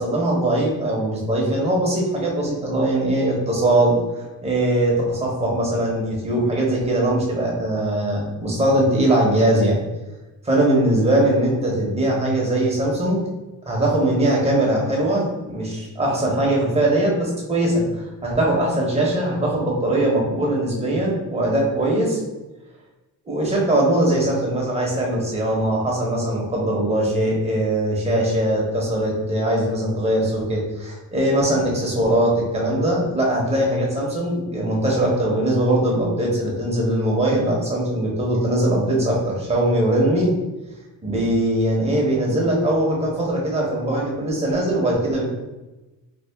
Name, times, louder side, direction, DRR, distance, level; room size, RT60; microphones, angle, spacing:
voice 1, 0.0-4.0 4.4-9.8 10.4-13.2 13.7-17.8 18.2-22.2 23.3-40.3 41.0-45.2, right 1 dB, 15° right, -3 dB, 0.9 m, -21 dB
3.4 x 2.3 x 3.4 m, 1.1 s
cardioid pair, 130°, 36 cm